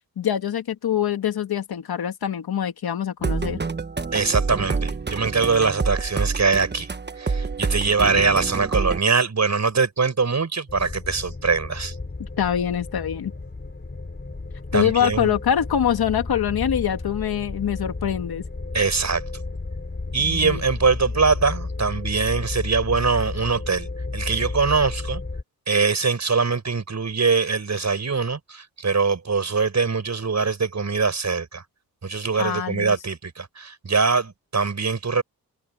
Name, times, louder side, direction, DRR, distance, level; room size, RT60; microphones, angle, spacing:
voice 1, 0.2-3.6 12.4-13.3 14.7-18.4 20.2-20.6 32.4-32.9, left 9 dB, 85° left, 2.1 m, -24 dB
sound 1, 3.2-9.0, right 4 dB, 30° right, 1.2 m, -27 dB
voice 2, 4.1-11.9 14.7-15.4 18.7-19.2 20.1-23.9 24.1-25.2 25.7-31.6 32.0-35.2, right 4 dB, 50° right, 6.4 m, -22 dB
sound 2, 10.7-25.4, left 3 dB, 30° left, 3.1 m, -33 dB
cardioid pair, 70°, 36 cm